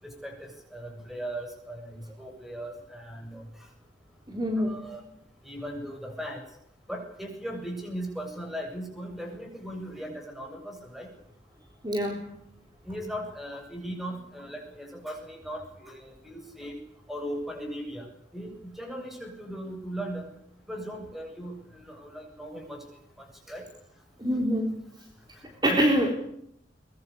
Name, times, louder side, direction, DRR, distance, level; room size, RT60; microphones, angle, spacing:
voice 1, 0.0-3.7 4.6-5.0 5.4-6.4 6.9-11.1 12.8-16.8 17.1-18.1 18.3-20.3 20.7-22.8 23.2-23.7 25.3-25.8, equal, ahead, 4 dB, 7.7 m, -38 dB
voice 2, 4.3-4.8 11.8-12.3 24.2-24.7 25.6-26.1, equal, 25° right, 2 dB, 3.9 m, -25 dB
23.5 x 22.0 x 8.6 m, 0.71 s
head